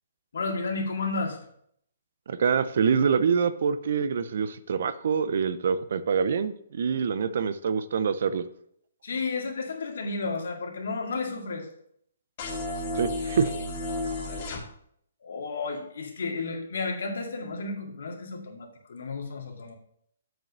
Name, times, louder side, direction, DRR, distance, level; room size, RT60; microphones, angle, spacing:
voice 1, 0.3-1.4 9.0-11.7 14.3-14.4 15.2-19.7, left 3 dB, 70° left, 2 dB, 2.2 m, -32 dB
voice 2, 2.3-8.4 13.0-13.5, right 6 dB, 60° right, 13 dB, 0.6 m, -25 dB
sound 1, 12.4-14.6, left 2 dB, 40° left, 1.8 m, -32 dB
7.6 x 5.2 x 6.7 m, 0.68 s
hypercardioid pair, 160°, 0 cm